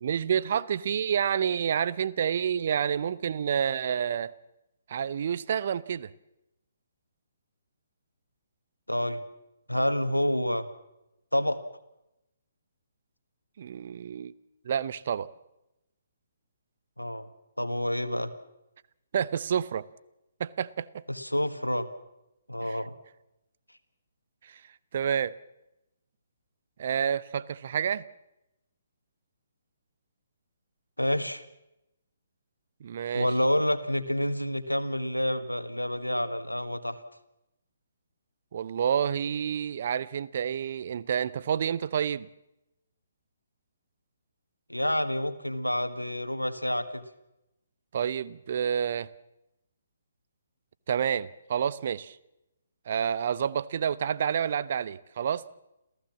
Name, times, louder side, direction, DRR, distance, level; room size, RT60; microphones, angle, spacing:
voice 1, 0.0-4.3 4.9-6.1 13.6-14.3 14.6-15.3 19.1-19.9 20.4-21.0 22.6-22.8 24.4-24.6 24.9-25.3 26.8-28.0 32.8-33.3 38.5-42.3 47.9-49.1 50.9-52.2 52.9-55.5, right 8 dB, 45° right, 0.7 m, -29 dB
voice 2, 8.9-9.2 9.7-10.7 11.3-11.6 17.0-17.3 17.6-18.3 21.1-21.9 22.5-22.9 31.0-31.4 33.1-37.0 44.7-47.1, left 1 dB, 90° left, 1.6 m, -28 dB
27.5 x 15.5 x 7.3 m
figure-of-eight pair, 130°, 0 cm